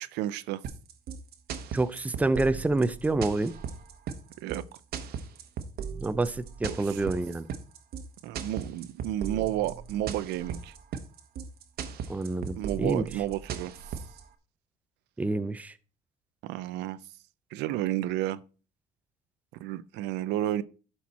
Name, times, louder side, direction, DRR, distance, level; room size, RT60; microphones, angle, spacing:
voice 1, 0.1-0.6 4.4-4.6 6.7-7.0 8.2-10.7 12.6-13.7 16.4-17.0 17.5-18.4 19.6-20.6, right 13 dB, 90° right, 0.5 m, -31 dB
sound 1, 0.6-14.2, right 7 dB, 65° right, 1.1 m, -37 dB
voice 2, 1.7-3.5 6.0-7.5 12.1-13.0 15.2-15.7, right 2 dB, 10° right, 0.5 m, -27 dB
11.5 x 4.5 x 4.2 m
cardioid pair, 110°, 17 cm